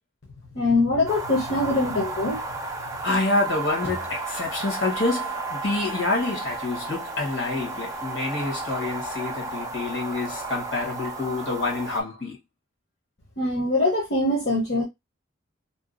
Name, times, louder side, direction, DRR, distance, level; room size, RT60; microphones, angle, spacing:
voice 1, 0.5-2.4 13.4-14.8, left 2 dB, 55° left, 0.8 m, -23 dB
sound 1, 1.1-12.0, right 3 dB, 15° right, 0.4 m, -33 dB
voice 2, 3.0-12.4, left 2 dB, 70° left, 1.2 m, -27 dB
2.8 x 2.3 x 2.5 m
head